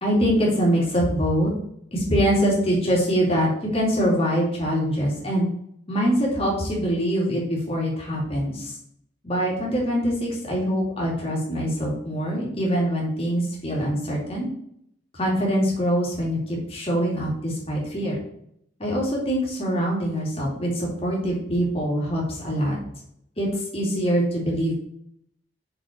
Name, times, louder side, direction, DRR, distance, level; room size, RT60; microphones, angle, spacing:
voice 1, 0.0-1.5 1.9-5.5 5.9-8.8 9.2-14.5 15.1-18.2 18.8-22.8 23.4-24.7, equal, 30° left, -3 dB, 2.6 m, -24 dB
6.6 x 5.0 x 4.4 m, 0.71 s
head